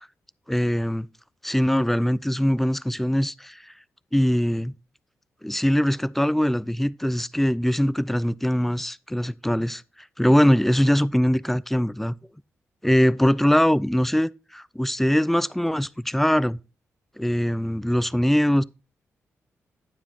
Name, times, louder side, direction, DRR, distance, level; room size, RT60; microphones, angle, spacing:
voice 1, 0.5-1.1 1.4-3.7 4.1-4.7 5.4-9.8 10.2-12.2 12.8-16.6 17.2-18.6, equal, 5° left, 0.3 m, -22 dB
9.0 x 7.3 x 2.8 m
cardioid pair, 65°, 5 cm